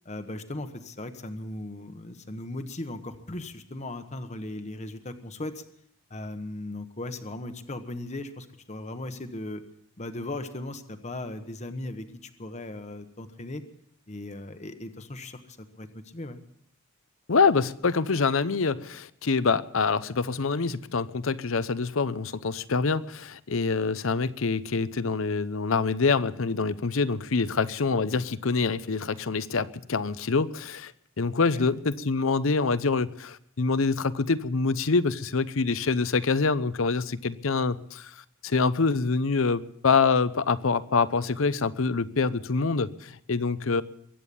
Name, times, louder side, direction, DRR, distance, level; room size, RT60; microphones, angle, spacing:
voice 1, 0.0-5.6 6.1-9.6 10.0-13.6 14.1-16.4 31.5-31.7, left 2 dB, 35° left, 1.1 m, -37 dB
voice 2, 17.3-30.9 31.2-38.1 38.4-43.8, left 4 dB, 70° left, 0.7 m, -25 dB
23.0 x 9.1 x 6.9 m
head